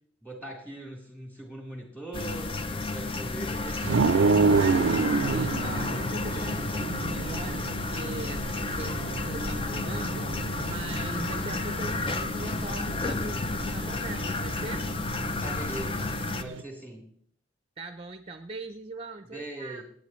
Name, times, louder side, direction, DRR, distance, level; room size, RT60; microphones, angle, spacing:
voice 1, 0.2-4.3 15.4-17.1 19.3-19.8, right 2 dB, 10° left, -1 dB, 3.7 m, -41 dB
sound 1, 2.1-16.4, left 3 dB, 30° left, 0.6 m, -31 dB
sound 2, 3.8-16.6, right 4 dB, 85° right, 0.4 m, -30 dB
voice 2, 4.6-8.4 8.8-14.9 17.8-19.8, right 2 dB, 30° right, 8 dB, 0.6 m, -40 dB
25.5 x 9.4 x 3.2 m, 0.62 s
head